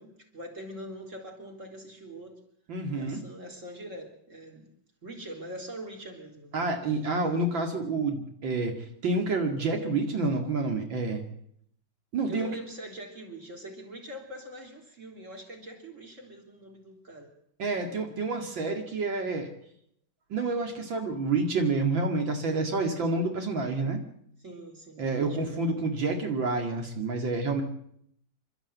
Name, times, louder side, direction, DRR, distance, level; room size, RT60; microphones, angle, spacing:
voice 1, 0.0-2.4 2.9-4.7 5.0-6.7 12.3-17.3 24.4-25.7, right 1 dB, 40° right, 2 dB, 4.0 m, -43 dB
voice 2, 2.7-3.2 6.5-11.2 12.1-12.5 17.6-19.5 20.3-24.0 25.0-27.6, right 3 dB, 80° right, 3 dB, 3.0 m, -28 dB
28.0 x 13.0 x 8.1 m, 0.70 s
omnidirectional pair, 2.1 m